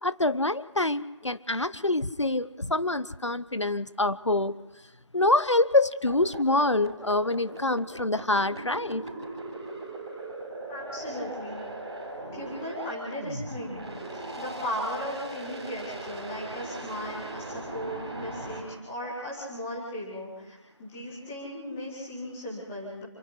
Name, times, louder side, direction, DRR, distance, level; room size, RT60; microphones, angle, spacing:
voice 1, 0.0-4.6 5.1-9.1, left 2 dB, 70° left, 15 dB, 1.0 m, -26 dB
sound 1, 6.1-18.6, right 2 dB, 10° right, 4.5 m, -39 dB
voice 2, 10.7-11.7 12.3-13.7 14.1-23.0, equal, 5° left, -5 dB, 2.0 m, -37 dB
27.5 x 12.5 x 9.6 m, 1.1 s
figure-of-eight pair, 170°, 15 cm